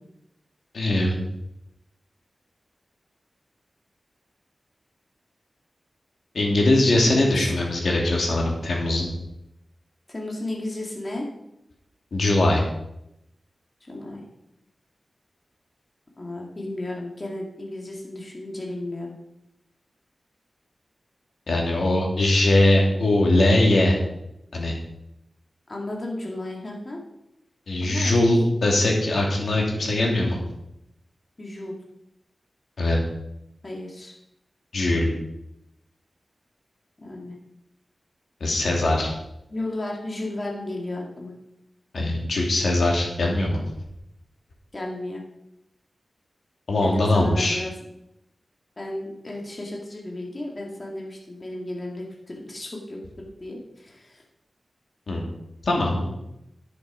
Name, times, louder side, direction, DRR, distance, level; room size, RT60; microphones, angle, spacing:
voice 1, 0.7-1.2 6.3-9.1 12.1-12.6 21.5-23.9 24.5-24.7 27.7-30.4 32.8-33.0 34.7-35.1 38.4-39.1 41.9-43.6 46.7-47.6 55.1-55.2 55.6-56.1, left 1 dB, 75° left, -1 dB, 2.6 m, -21 dB
voice 2, 10.1-11.3 13.9-14.2 16.2-19.2 25.7-27.0 27.8-28.5 31.4-31.7 33.6-34.2 37.0-37.4 39.5-41.3 44.7-45.2 46.8-47.7 48.8-53.0 53.4-54.2, left 1 dB, 35° left, -1 dB, 2.2 m, -33 dB
10.5 x 6.6 x 4.9 m, 0.84 s
wide cardioid pair, 95°, 0 cm